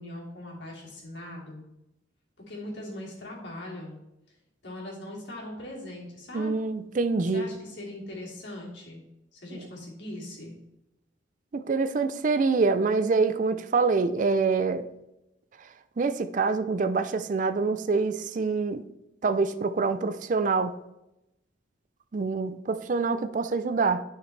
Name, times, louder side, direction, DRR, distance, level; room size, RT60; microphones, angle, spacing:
voice 1, 0.0-1.6 2.5-4.0 4.6-6.5 7.3-9.0 9.3-10.6, left 1 dB, 65° left, -3 dB, 2.8 m, -40 dB
voice 2, 6.3-7.5 9.5-9.6 11.5-14.9 16.0-18.8 19.2-20.7 22.1-24.0, right 4 dB, 40° right, 11 dB, 0.4 m, -25 dB
10.5 x 5.9 x 3.3 m, 0.91 s
head